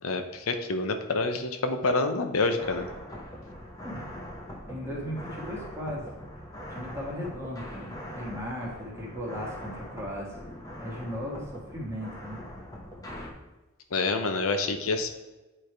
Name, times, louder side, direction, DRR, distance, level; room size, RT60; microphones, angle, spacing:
voice 1, 0.0-2.9 13.9-15.1, left 3 dB, 90° left, 7 dB, 0.7 m, -27 dB
sound 1, 2.6-13.3, equal, 15° left, 0.9 m, -42 dB
voice 2, 4.7-6.1 6.7-10.4 10.8-12.4, equal, 15° right, -4 dB, 1.6 m, -37 dB
8.8 x 3.4 x 4.5 m, 1.1 s
head